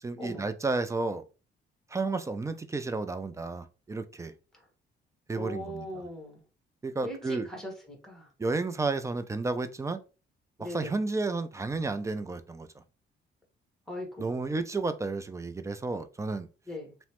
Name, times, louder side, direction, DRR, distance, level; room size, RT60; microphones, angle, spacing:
voice 1, 0.0-1.2 1.9-4.3 5.3-6.0 6.8-7.5 8.4-10.0 10.6-12.7 14.2-16.5, right 3 dB, 15° right, 0.3 m, -32 dB
voice 2, 5.3-6.4 7.0-8.3 10.6-10.9 13.9-14.4 16.7-16.9, left 1 dB, ahead, 1.2 m, -40 dB
3.0 x 2.1 x 2.9 m
cardioid pair, 90°, 20 cm